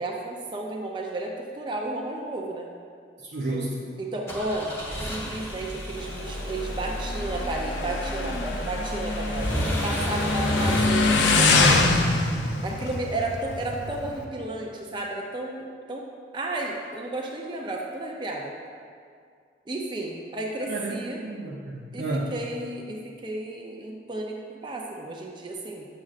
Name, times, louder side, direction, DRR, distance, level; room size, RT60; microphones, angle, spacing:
voice 1, 0.0-2.7 4.0-4.8 5.1-9.5 9.8-12.2 12.6-16.1 16.3-18.5 19.7-21.2 21.9-22.0 22.3-25.9, right 2 dB, 25° right, 0 dB, 0.4 m, -33 dB
voice 2, 3.2-3.8 20.7-22.3, right 2 dB, 70° right, -4 dB, 0.6 m, -31 dB
sound 1, 4.3-10.8, equal, 15° left, 0.8 m, -31 dB
Motorcycle, 6.0-14.2, left 3 dB, 85° left, 0.5 m, -25 dB
7.3 x 6.3 x 2.4 m, 2.2 s
head